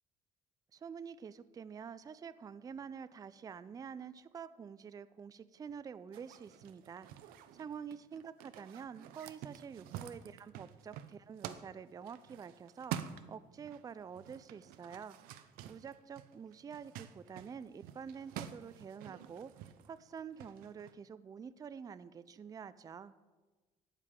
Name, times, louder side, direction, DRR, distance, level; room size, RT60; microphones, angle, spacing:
voice 1, 0.7-7.1 7.5-12.9 13.3-15.2 15.7-19.5 19.9-23.1, right 7 dB, 25° right, 14 dB, 0.4 m, -47 dB
sound 1, 6.1-13.8 14.1-20.9, right 10 dB, 80° right, 0.6 m, -48 dB
12.0 x 8.2 x 3.7 m, 1.2 s
cardioid pair, 100°, 15 cm